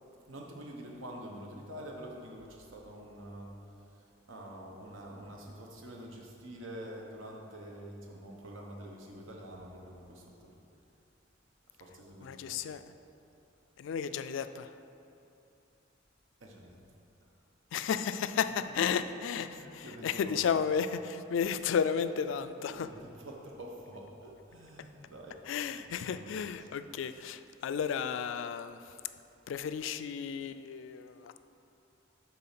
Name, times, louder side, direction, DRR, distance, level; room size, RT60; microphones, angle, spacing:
voice 1, 0.3-3.5 3.9-10.5 11.8-12.8 16.4-16.8 19.4-20.3 22.4-25.4 26.1-26.7, right 1 dB, 90° right, 0 dB, 1.1 m, -47 dB
voice 2, 12.2-12.8 13.8-14.7 17.7-22.9 25.5-28.8 29.5-31.4, left 7 dB, 70° left, 11 dB, 0.3 m, -33 dB
7.6 x 4.1 x 5.8 m, 2.7 s
head